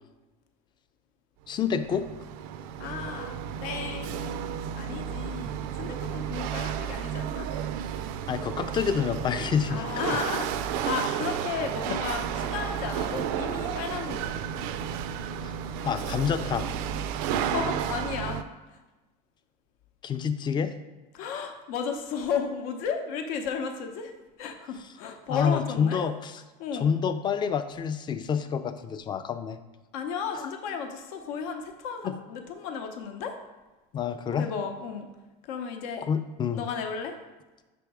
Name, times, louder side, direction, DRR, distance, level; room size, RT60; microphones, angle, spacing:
voice 1, 1.5-2.1 5.5-5.6 8.3-9.8 15.4-15.5 15.8-16.7 20.0-20.7 25.3-26.4 26.8-29.6 30.4-30.5 32.0-32.2 33.9-34.5 36.0-36.6, left 7 dB, 25° left, 11 dB, 0.4 m, -28 dB
Chatter / Hiss / Rattle, 1.5-18.4, right 9 dB, 75° right, 0.4 m, -32 dB
voice 2, 2.8-4.4 4.7-7.5 9.7-14.4 17.4-18.5 21.1-24.1 24.4-26.0 26.6-26.9 29.9-33.3 34.4-35.1 35.5-36.1 36.5-37.1, left 6 dB, 80° left, 5 dB, 0.8 m, -34 dB
6.1 x 3.4 x 4.8 m, 1.1 s
supercardioid pair, 120°, 18 cm